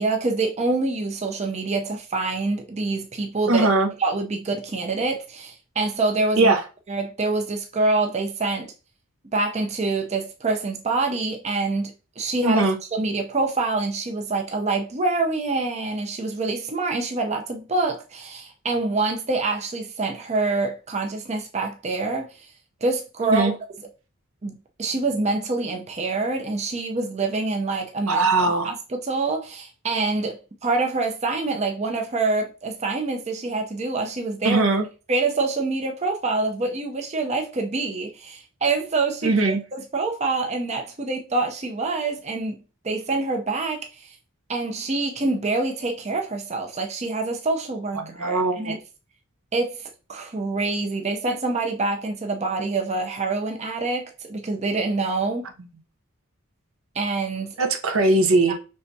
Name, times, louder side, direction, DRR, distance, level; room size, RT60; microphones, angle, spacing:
voice 1, 0.0-3.7 4.0-6.6 6.9-8.7 9.3-12.6 12.9-22.5 22.8-23.6 24.4-28.3 28.6-28.7 29.0-34.6 35.1-42.6 42.8-44.2 44.5-48.8 49.5-49.8 50.1-55.5 56.9-57.5 58.5-58.6, right 3 dB, 30° right, 0.6 m, -26 dB
voice 2, 3.5-3.9 6.4-6.6 12.4-12.8 23.2-23.5 28.1-28.7 34.4-34.8 39.2-39.6 47.9-48.7 57.6-58.5, right 2 dB, 70° right, 0.7 m, -20 dB
5.6 x 3.4 x 2.7 m
head